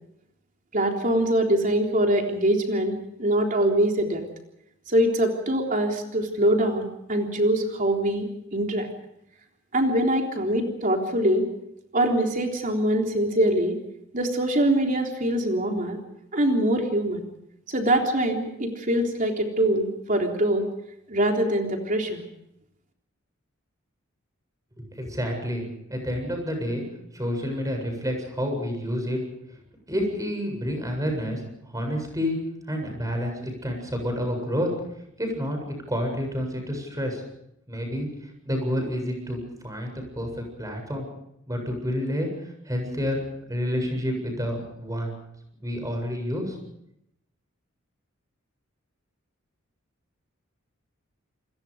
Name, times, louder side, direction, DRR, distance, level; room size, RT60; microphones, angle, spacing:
voice 1, 0.7-4.2 4.9-8.9 9.7-11.5 11.9-13.8 14.1-16.0 16.3-17.2 17.7-20.7 21.1-22.2, right 1 dB, 40° right, 2 dB, 3.7 m, -23 dB
voice 2, 24.8-26.8 27.1-29.2 29.9-32.4 32.7-34.7 35.2-37.2 37.7-41.1 41.5-42.3 42.6-43.2 43.5-45.1 45.6-46.6, equal, 15° right, 4 dB, 7.7 m, -29 dB
29.0 x 22.0 x 5.1 m, 0.80 s
head